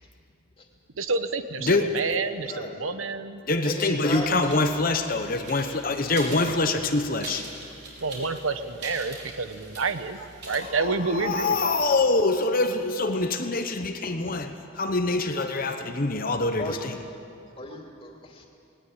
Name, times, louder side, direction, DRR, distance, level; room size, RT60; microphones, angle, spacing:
voice 1, 1.0-3.4 8.0-11.7, right 4 dB, 75° right, 10 dB, 1.0 m, -29 dB
voice 2, 1.6-2.0 3.4-7.4 10.5-17.0, left 3 dB, 45° left, 6 dB, 1.0 m, -25 dB
voice 3, 2.4-2.8 3.6-4.7 16.6-16.8 17.6-18.5, left 1 dB, 25° left, 1 dB, 2.8 m, -35 dB
sound 1, 4.1-11.6, right 2 dB, 55° right, 5.3 m, -43 dB
19.5 x 19.0 x 8.7 m, 2.5 s
head